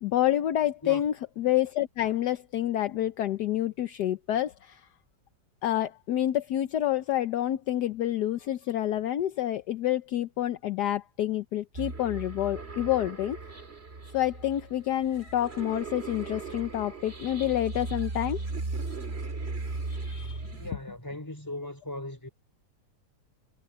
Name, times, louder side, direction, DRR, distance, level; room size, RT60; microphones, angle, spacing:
voice 1, 0.0-4.9 5.6-13.4 14.1-18.4 19.9-20.4, left 12 dB, 70° left, 1.3 m, -28 dB
sound 1, 11.7-20.7, right 3 dB, 35° right, 2.3 m, -37 dB
voice 2, 20.6-22.3, left 1 dB, 10° left, 3.8 m, -38 dB
omnidirectional pair, 1.9 m